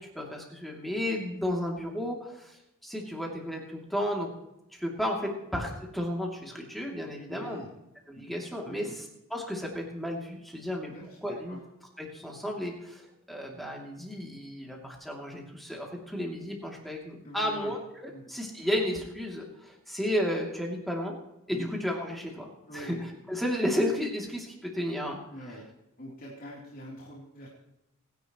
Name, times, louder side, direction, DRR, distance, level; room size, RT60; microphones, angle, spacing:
voice 1, 0.0-4.3 4.7-7.7 8.1-9.0 9.3-10.9 11.2-11.6 12.0-21.1 21.5-25.2, equal, ahead, -1 dB, 2.8 m, -33 dB
voice 2, 7.3-7.7 8.1-8.3 8.6-8.9 10.9-11.6 17.2-17.7 18.1-18.2 21.5-21.7 22.7-23.0 25.3-25.7 26.0-27.5, equal, 40° left, -5 dB, 3.5 m, -44 dB
26.0 x 10.5 x 3.1 m, 0.90 s
head